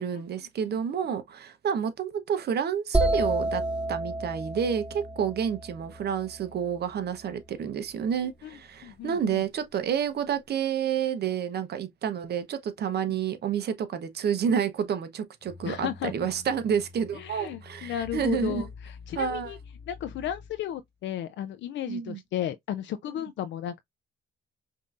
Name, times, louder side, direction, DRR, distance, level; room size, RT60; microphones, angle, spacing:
voice 1, 0.0-3.6 3.9-18.7 19.1-19.6 21.9-22.2 23.2-23.3, right 8 dB, 55° right, 0.8 m, -29 dB
sound 1, 2.9-6.7, right 2 dB, 5° right, 0.8 m, -29 dB
voice 2, 8.8-9.4 13.1-13.2 15.7-16.1 17.1-19.6 19.9-23.8, left 11 dB, 70° left, 0.4 m, -34 dB
sound 2, 15.4-20.9, left 4 dB, 50° left, 0.9 m, -47 dB
5.2 x 2.7 x 2.4 m
cardioid pair, 90°, 20 cm